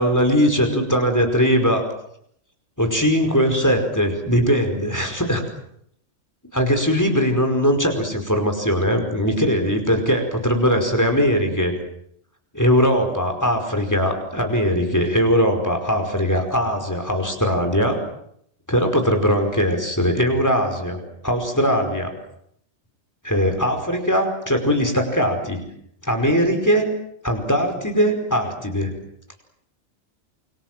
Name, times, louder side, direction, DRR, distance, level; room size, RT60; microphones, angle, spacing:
voice 1, 0.0-1.8 2.8-5.4 6.5-11.7 12.5-18.0 18.7-21.0 21.2-22.1 23.2-25.6 26.0-26.9 27.2-28.9, equal, 15° left, 5 dB, 5.1 m, -20 dB
28.5 x 24.5 x 7.6 m, 0.71 s
omnidirectional pair, 1.3 m